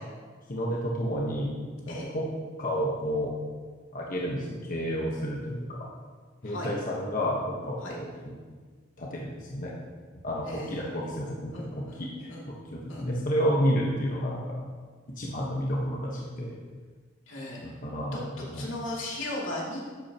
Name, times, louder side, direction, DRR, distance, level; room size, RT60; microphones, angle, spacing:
voice 1, 0.5-1.5 1.9-2.3 2.6-3.3 3.9-5.9 6.4-8.3 9.0-9.7 10.2-14.6 15.2-16.6 17.6-18.2 18.5-18.7, equal, 45° left, -3 dB, 1.3 m, -30 dB
voice 2, 10.5-11.1 11.5-12.0 12.3-12.4 12.9-13.1 17.3-17.6 18.1-18.2 18.5-19.8, left 1 dB, 85° left, -4 dB, 2.6 m, -36 dB
12.0 x 8.7 x 2.9 m, 1.5 s
head